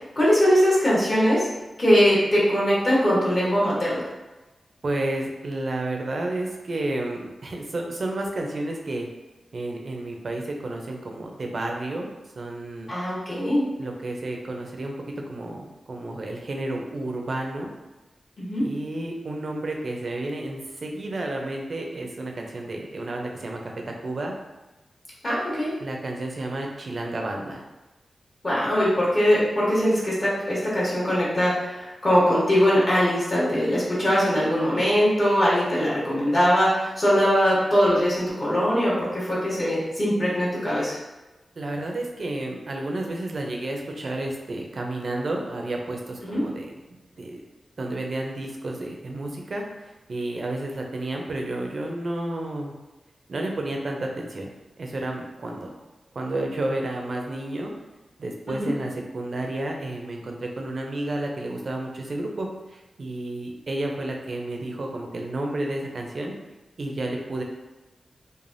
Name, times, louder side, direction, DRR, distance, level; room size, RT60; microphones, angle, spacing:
voice 1, 0.2-1.5 1.8-4.0 12.9-13.6 18.4-18.7 25.2-25.7 28.4-41.0 46.2-46.4 58.5-58.7, equal, 40° left, -7 dB, 1.0 m, -21 dB
voice 2, 4.8-9.1 9.5-12.1 12.4-12.9 13.8-14.9 15.3-17.7 18.6-23.7 24.0-24.3 25.8-27.6 41.6-46.7 47.2-47.4 47.8-52.7 53.3-54.5 54.8-55.7 56.2-57.7 58.2-66.3 66.8-67.4, right 2 dB, 55° right, 1 dB, 0.5 m, -31 dB
3.2 x 2.1 x 2.5 m, 1.1 s
wide cardioid pair, 100°, 0 cm